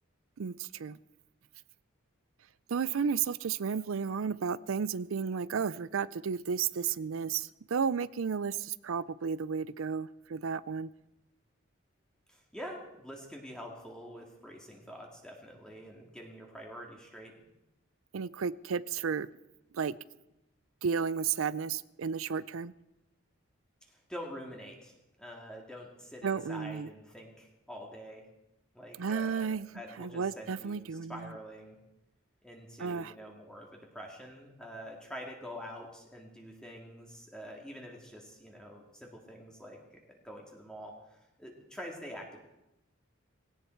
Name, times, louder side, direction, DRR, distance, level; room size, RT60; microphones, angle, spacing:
voice 1, 0.4-1.0 2.7-10.9 18.1-19.3 19.7-20.0 20.8-22.7 26.2-26.9 29.0-29.7 30.0-31.3 32.8-33.1, right 6 dB, 80° right, 18 dB, 0.5 m, -33 dB
voice 2, 12.3-17.3 23.8-28.3 28.7-31.8 32.4-39.8 40.1-42.4, equal, 5° left, -1 dB, 2.1 m, -46 dB
18.5 x 17.0 x 4.5 m, 0.89 s
head